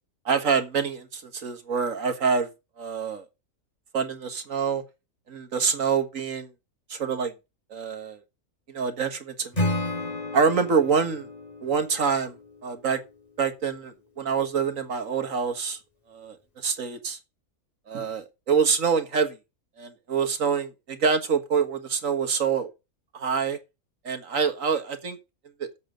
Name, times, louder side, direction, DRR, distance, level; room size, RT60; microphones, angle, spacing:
voice 1, 0.3-2.5 2.8-3.3 3.9-4.8 5.3-6.5 6.9-7.3 7.7-8.2 8.7-9.7 10.3-11.3 11.6-12.3 12.6-13.0 13.4-15.8 16.1-17.2 17.9-19.4 19.8-22.7 23.1-23.6 24.0-25.2, right 6 dB, 65° right, 1.9 m, -26 dB
Acoustic guitar / Strum, 9.5-12.7, left 2 dB, 25° left, 3.4 m, -31 dB
7.9 x 6.7 x 7.7 m
omnidirectional pair, 1.5 m